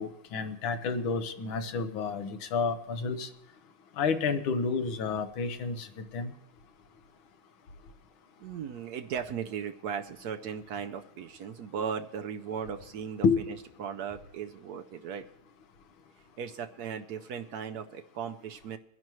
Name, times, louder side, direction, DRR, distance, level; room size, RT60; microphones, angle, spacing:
voice 1, 0.0-3.3 4.0-6.3 13.2-13.4, left 5 dB, 75° left, 7 dB, 1.8 m, -30 dB
voice 2, 8.4-15.3 16.4-18.8, right 7 dB, 75° right, 7 dB, 0.9 m, -37 dB
23.0 x 10.5 x 3.1 m, 0.86 s
omnidirectional pair, 2.3 m